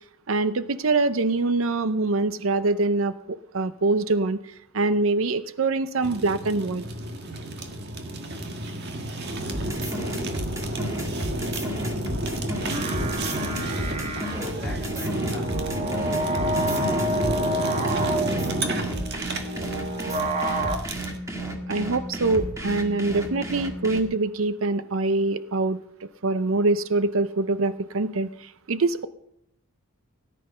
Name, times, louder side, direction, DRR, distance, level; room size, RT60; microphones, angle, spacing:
voice 1, 0.3-4.4 4.7-6.8 21.7-29.1, right 3 dB, 75° right, 13 dB, 0.6 m, -24 dB
Fire, 6.0-21.2, right 1 dB, 50° right, 1.7 m, -31 dB
sound 1, 9.5-17.4 17.8-24.0, right 1 dB, 15° right, 1.9 m, -33 dB
voice 2, 10.3-21.8, left 1 dB, 5° left, -3 dB, 5.4 m, -46 dB
sound 2, 12.5-20.8, right 1 dB, 35° right, 1.5 m, -29 dB
17.5 x 10.0 x 5.5 m, 0.76 s
head